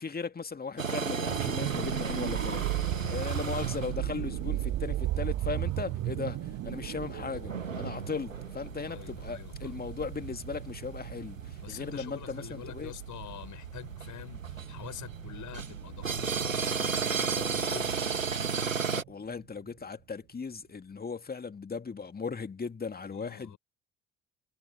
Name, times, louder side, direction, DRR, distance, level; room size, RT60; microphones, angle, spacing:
voice 1, 0.0-2.7 3.1-12.9 18.9-23.6, left 5 dB, 25° left, 2.3 m, -37 dB
sound 1, 0.8-19.0, right 5 dB, 85° right, 2.0 m, -35 dB
sound 2, 1.2-19.1 19.5-19.7, right 14 dB, 40° right, 0.8 m, -37 dB
voice 2, 8.9-9.8 11.6-18.0 23.1-23.6, left 12 dB, 50° left, 7.2 m, -46 dB
figure-of-eight pair, 50°, 38 cm